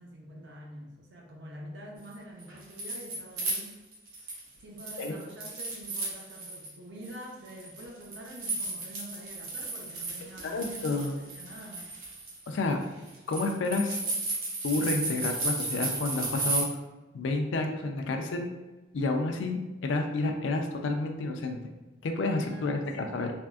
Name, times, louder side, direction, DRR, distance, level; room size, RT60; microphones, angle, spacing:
voice 1, 0.0-3.7 4.6-11.9 22.4-23.2, equal, 55° right, -1 dB, 0.6 m, -46 dB
sound 1, 2.4-4.5 4.8-6.7 7.0-16.6, right 2 dB, 80° right, 0.9 m, -34 dB
voice 2, 10.4-11.1 12.5-12.8 13.3-14.0 14.6-16.7 17.1-18.5 18.9-21.6 22.0-23.3, left 3 dB, 65° left, 4 dB, 0.4 m, -30 dB
3.5 x 2.5 x 2.3 m, 1.1 s
head